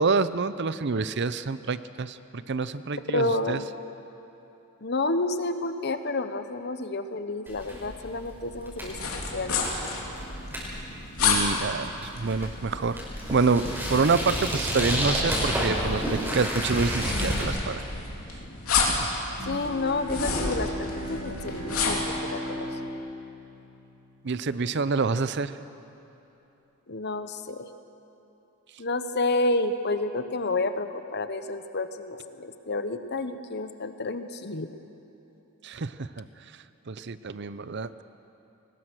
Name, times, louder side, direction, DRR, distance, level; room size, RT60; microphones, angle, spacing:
voice 1, 0.0-3.6 11.2-13.0 13.3-17.8 19.0-19.1 24.2-25.5 35.6-36.2 36.9-38.0, right 4 dB, 50° right, 14 dB, 0.6 m, -27 dB
voice 2, 3.1-3.7 4.8-9.5 19.4-22.8 26.9-27.7 28.8-34.7, left 2 dB, 50° left, 9 dB, 1.0 m, -30 dB
sound 1, 7.5-17.4, equal, 10° right, 5.2 m, -31 dB
sound 2, 8.8-22.1, left 4 dB, 80° left, 3.3 m, -31 dB
Bowed string instrument, 19.4-24.6, equal, 75° right, 2.2 m, -37 dB
23.0 x 20.0 x 6.3 m, 3.0 s
head